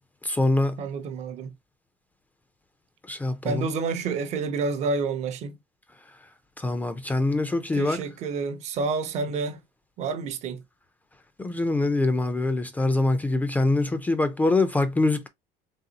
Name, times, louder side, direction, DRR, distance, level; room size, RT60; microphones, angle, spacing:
voice 1, 0.2-0.8 3.1-3.7 6.6-8.0 11.4-15.3, left 2 dB, 10° left, 0.4 m, -24 dB
voice 2, 0.8-1.5 3.4-5.6 7.7-9.6 10.0-10.6, right 4 dB, 45° right, 0.6 m, -29 dB
3.9 x 3.5 x 2.7 m
cardioid pair, 155°, 16 cm